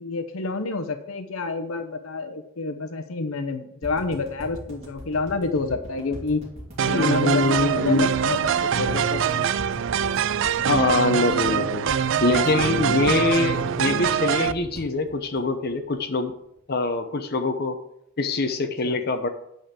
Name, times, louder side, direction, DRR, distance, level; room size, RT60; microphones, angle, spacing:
voice 1, 0.0-6.4 6.9-9.5 12.8-13.3 18.8-19.0, left 3 dB, 85° left, 9 dB, 0.9 m, -29 dB
sound 1, 3.8-16.0 16.3-16.4 16.6-16.7, equal, 30° right, 2.9 m, -39 dB
sound 2, 6.8-14.5, right 8 dB, 60° right, 0.4 m, -24 dB
voice 2, 6.9-8.1 10.6-11.9 12.2-16.3 16.7-17.8 18.2-19.3, left 3 dB, 50° left, 6 dB, 0.9 m, -24 dB
9.1 x 5.1 x 7.5 m, 0.78 s
head